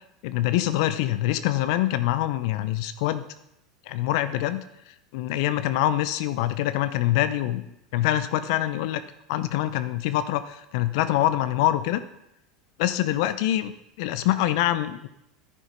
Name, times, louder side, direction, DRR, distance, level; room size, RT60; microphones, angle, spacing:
voice 1, 0.2-3.2 3.9-4.6 5.1-7.6 7.9-9.0 9.3-12.0 12.8-13.7 14.0-15.1, left 13 dB, 65° left, 12 dB, 0.7 m, -25 dB
10.0 x 10.0 x 5.3 m, 0.82 s
hypercardioid pair, 90°, 3 cm